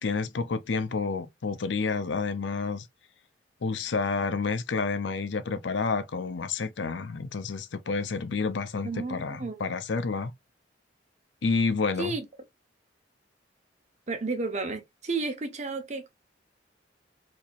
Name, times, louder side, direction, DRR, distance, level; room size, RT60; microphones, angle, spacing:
voice 1, 0.0-2.9 3.6-10.3 11.4-12.1, left 4 dB, 80° left, 0.6 m, -29 dB
voice 2, 8.8-9.6 12.0-12.2 14.1-16.1, right 3 dB, 40° right, 1.0 m, -32 dB
4.5 x 2.8 x 2.5 m
head